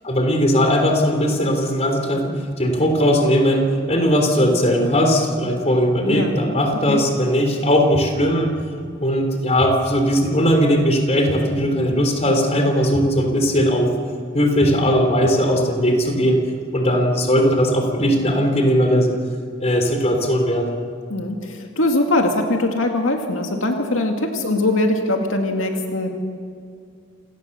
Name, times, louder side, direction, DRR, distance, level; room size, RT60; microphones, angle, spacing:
voice 1, 0.0-8.5 9.0-13.9 14.3-16.4 16.7-19.1 19.6-20.8, equal, 35° left, 4 dB, 3.7 m, -18 dB
sound 1, 7.9-8.0 8.6-8.7 9.6-9.7 10.2-10.3 11.3-11.4 11.9-12.0 12.9-13.0 13.6-13.7 14.6-14.7 15.2-15.3, equal, 15° right, 7.6 m, -32 dB
voice 2, 21.1-26.2, left 2 dB, 90° left, 3 dB, 2.2 m, -21 dB
28.0 x 18.5 x 6.8 m, 2.3 s
head